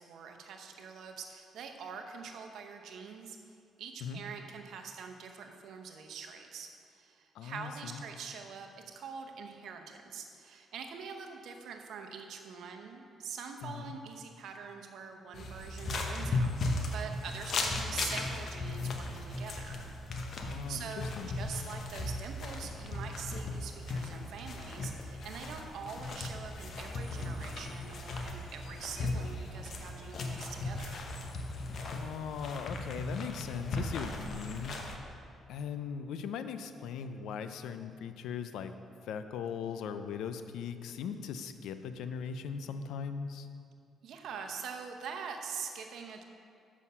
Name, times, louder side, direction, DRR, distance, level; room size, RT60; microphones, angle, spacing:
voice 1, 0.0-19.8 20.7-31.0 44.0-46.2, right 6 dB, 75° right, 4 dB, 0.9 m, -44 dB
voice 2, 7.3-8.0 13.6-13.9 20.4-21.4 31.8-35.0 35.5-38.8 39.0-43.5, left 7 dB, 85° left, 10 dB, 0.5 m, -39 dB
sound 1, 15.3-35.0, left 2 dB, 60° left, 1.0 m, -37 dB
7.5 x 6.3 x 5.5 m, 2.4 s
cardioid pair, 90°, 0 cm